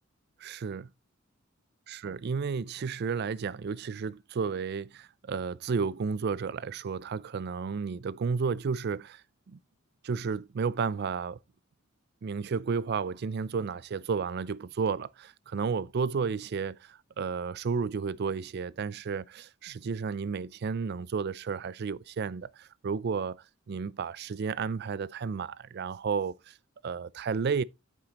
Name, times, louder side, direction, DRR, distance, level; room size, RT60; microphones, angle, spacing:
voice 1, 0.4-0.9 1.9-9.6 10.0-11.4 12.2-26.6 26.8-27.6, right 5 dB, 55° right, 0.4 m, -32 dB
9.1 x 7.4 x 2.9 m
head